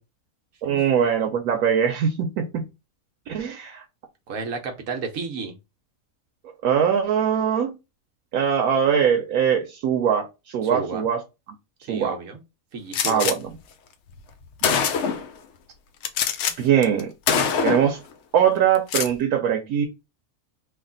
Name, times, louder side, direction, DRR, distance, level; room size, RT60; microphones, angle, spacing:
voice 1, 0.6-2.6 3.3-3.8 6.6-7.7 8.3-11.2 11.9-12.2 13.1-13.5 16.6-17.1 17.6-18.0 18.3-19.9, right 8 dB, 90° right, 1.1 m, -22 dB
voice 2, 4.3-5.5 10.6-11.1 11.9-12.4 12.7-13.3, right 4 dB, 70° right, 1.1 m, -32 dB
Gunshot gunfire, 12.9-13.4 14.2-14.3 14.6-15.3 16.0-16.5 16.8-17.0 17.3-17.9 18.8-19.1, left 7 dB, 65° left, 0.8 m, -23 dB
3.4 x 2.3 x 3.7 m
omnidirectional pair, 1.5 m